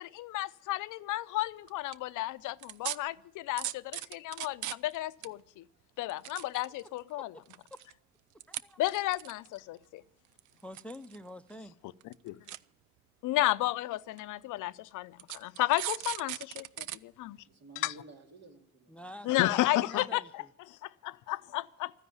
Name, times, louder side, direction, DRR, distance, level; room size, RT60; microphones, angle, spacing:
voice 1, 0.0-5.6 6.0-7.3 8.8-10.0 12.0-12.4 13.2-17.4 17.8-17.9 19.2-21.9, left 16 dB, 85° left, 0.6 m, -33 dB
sound 1, 1.7-1.9 2.6-3.0 3.6-5.0 5.2-5.3 6.0-7.0 7.5-7.9 8.4-8.6 8.9-9.6 10.4-11.2 11.5-11.6 12.0-12.1 12.5-12.6 13.4-13.5 14.2-14.3 15.2-17.0 17.4-17.5, right 14 dB, 80° right, 0.5 m, -38 dB
voice 2, 8.5-8.8 10.6-11.8 18.9-20.5, left 1 dB, 5° left, 0.6 m, -46 dB
voice 3, 17.5-19.4 21.3-21.4, right 2 dB, 60° right, 2.8 m, -53 dB
13.5 x 9.9 x 9.4 m
cardioid pair, 90°, 30 cm